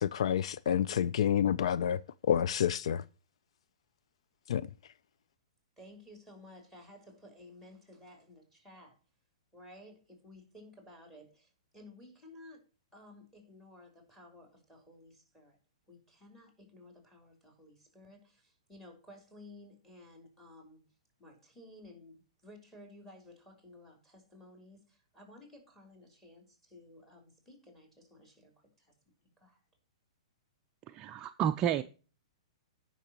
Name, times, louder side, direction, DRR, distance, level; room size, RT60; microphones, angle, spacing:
voice 1, 0.0-3.0 4.5-4.6, left 9 dB, 70° left, 0.4 m, -29 dB
voice 2, 5.8-9.0 9.5-12.6 12.9-15.6 15.9-20.8 21.2-28.9 29.2-29.6, left 1 dB, 5° left, 3.6 m, -55 dB
voice 3, 30.9-31.8, right 10 dB, 25° right, 0.4 m, -30 dB
15.5 x 5.9 x 3.0 m
hypercardioid pair, 145°, 3 cm